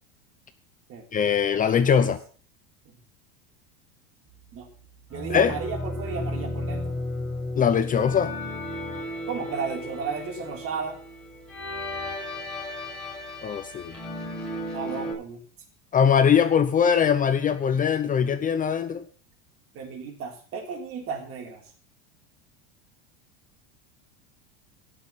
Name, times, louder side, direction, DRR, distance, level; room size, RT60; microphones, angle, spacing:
voice 1, 1.1-2.2 5.3-5.5 7.5-8.3 13.4-13.9 15.9-19.0, left 7 dB, 25° left, 10 dB, 0.8 m, -21 dB
sound 1, 5.1-15.1, left 1 dB, 5° left, 7.5 m, -34 dB
voice 2, 5.1-7.0 9.3-11.0 14.7-15.4 19.7-21.6, right 5 dB, 40° right, 3 dB, 3.9 m, -33 dB
17.0 x 6.6 x 5.7 m, 0.41 s
supercardioid pair, 135°, 34 cm